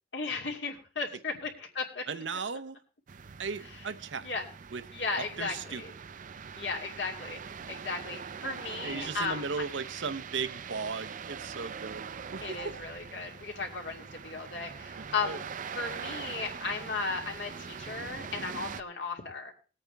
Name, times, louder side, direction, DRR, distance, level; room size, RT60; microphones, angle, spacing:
voice 1, 0.1-2.0 4.2-4.4 4.9-5.9 6.5-7.4 7.7-9.4 12.4-15.4 15.7-19.5, left 4 dB, 70° left, 2.6 m, -35 dB
voice 2, 2.1-2.8 3.4-4.3 4.7-4.8 5.2-5.8 8.8-12.8 15.0-15.4, right 5 dB, 90° right, 0.8 m, -36 dB
sound 1, 3.1-18.8, right 6 dB, 45° right, 0.5 m, -43 dB
20.0 x 8.7 x 3.4 m
head